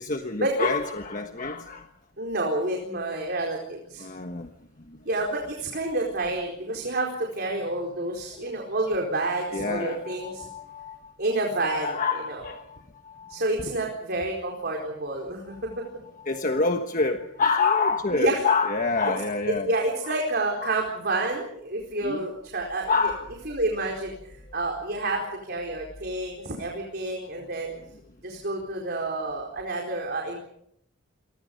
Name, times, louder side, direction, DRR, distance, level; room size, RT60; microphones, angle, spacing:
voice 1, 0.0-1.9 4.0-4.5 4.9-5.0 8.4-8.5 9.5-11.1 11.6-13.4 15.2-15.9 16.2-19.7 20.0-20.2 20.6-20.7 22.0-22.3 22.9-23.3, left 4 dB, 40° left, 5 dB, 1.4 m, -28 dB
voice 2, 2.2-4.0 5.0-10.5 11.2-12.0 12.3-12.4 13.3-15.7 18.1-18.4 19.6-23.1 23.5-27.7 28.2-30.4, right 2 dB, 50° right, 1 dB, 4.3 m, -29 dB
29.0 x 23.5 x 5.4 m, 0.71 s
head